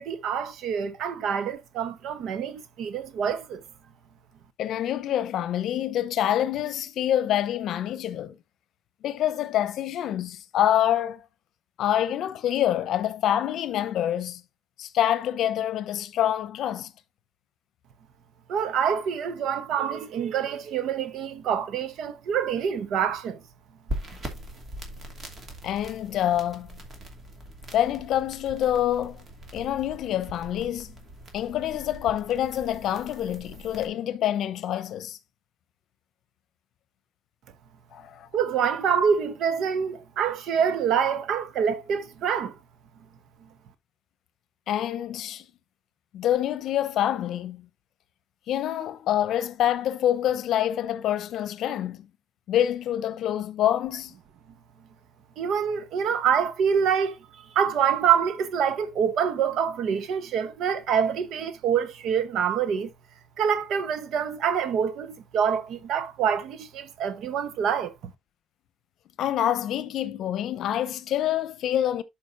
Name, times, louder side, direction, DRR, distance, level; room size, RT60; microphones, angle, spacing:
voice 1, 0.0-3.6 18.5-23.4 38.3-42.6 55.4-57.1 57.5-62.9 63.4-68.1, right 7 dB, 65° right, 1.1 m, -26 dB
voice 2, 4.6-8.3 9.0-11.2 11.8-14.4 14.8-16.9 25.6-26.8 27.7-29.2 29.5-30.9 31.3-35.2 37.9-38.3 44.7-45.5 46.1-47.7 48.5-52.1 52.5-54.1 69.2-72.0, left 11 dB, 60° left, 0.9 m, -26 dB
sound 1, 23.9-33.9, right 1 dB, 30° right, 2.5 m, -41 dB
12.0 x 5.2 x 2.6 m
cardioid pair, 125°, 0 cm